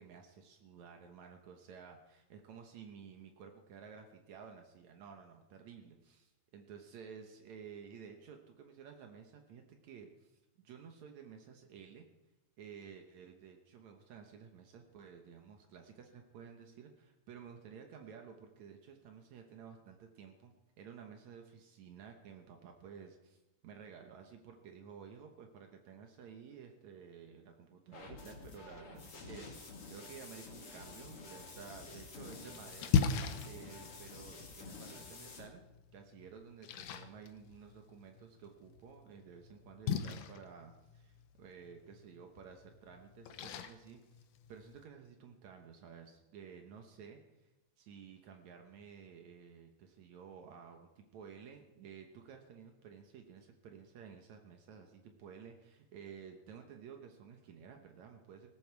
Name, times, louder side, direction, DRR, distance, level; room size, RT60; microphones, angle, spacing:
voice 1, 0.0-12.1 12.6-32.9 33.4-35.6 35.9-44.0 44.5-47.5 47.8-58.5, right 7 dB, 90° right, 4 dB, 1.5 m, -53 dB
sound 1, 27.9-35.4, left 3 dB, 40° left, 2.5 m, -50 dB
Splash splatter, 31.8-44.8, left 7 dB, 90° left, 1.8 m, -40 dB
19.0 x 15.5 x 4.7 m, 1.0 s
omnidirectional pair, 5.2 m